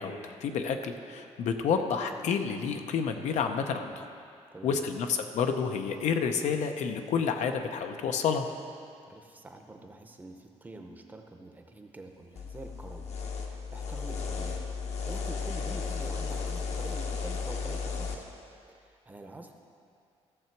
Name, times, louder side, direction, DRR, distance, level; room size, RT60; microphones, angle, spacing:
voice 1, 0.0-4.1 4.6-8.5, left 6 dB, 85° left, 6 dB, 0.7 m, -29 dB
voice 2, 9.1-13.1 13.5-14.6 15.1-18.2 18.7-19.6, right 2 dB, 15° right, 4 dB, 0.7 m, -46 dB
sound 1, 12.4-18.2, left 5 dB, 65° left, 1.1 m, -34 dB
15.0 x 6.9 x 4.6 m, 2.4 s
wide cardioid pair, 175°, 12 cm